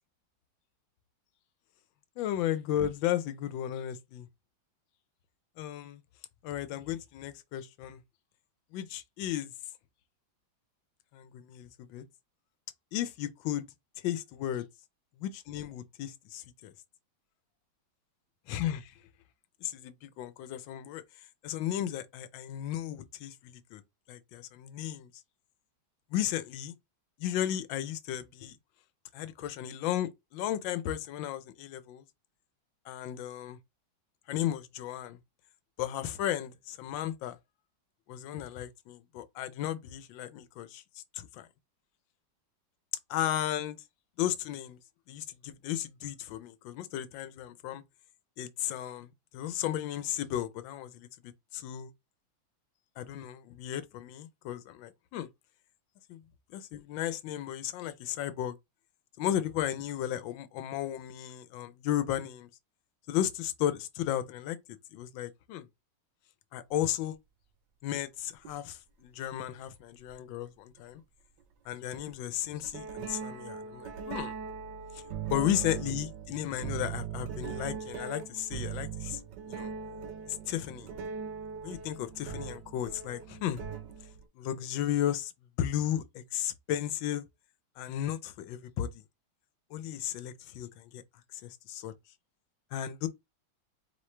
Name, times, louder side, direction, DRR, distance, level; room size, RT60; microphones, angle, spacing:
voice 1, 2.2-4.3 5.6-6.0 6.4-8.0 8.7-9.5 11.1-12.0 12.9-13.7 14.0-14.7 15.2-16.7 18.5-18.9 19.6-21.0 21.4-23.8 24.1-25.1 26.1-26.7 27.2-28.6 29.1-32.0 32.9-33.6 34.3-35.2 35.8-37.4 38.1-40.8 41.1-41.5 43.1-43.8 44.2-44.8 45.1-47.8 48.4-51.9 53.0-55.3 56.1-56.2 56.5-58.6 59.2-62.5 63.1-64.6 64.9-65.7 66.5-67.2 67.8-71.0 71.7-74.3 74.9-79.2 79.5-79.7 80.3-80.9 81.6-83.6 84.4-85.3 85.6-87.3 87.8-88.9 89.7-91.0 91.3-91.9 92.7-93.1, left 11 dB, 80° left, 1.3 m, -34 dB
sound 1, 68.5-68.6 70.1-70.2 71.9-72.1 72.6-84.2, right 7 dB, 70° right, 1.3 m, -40 dB
4.4 x 3.1 x 3.2 m
omnidirectional pair, 2.1 m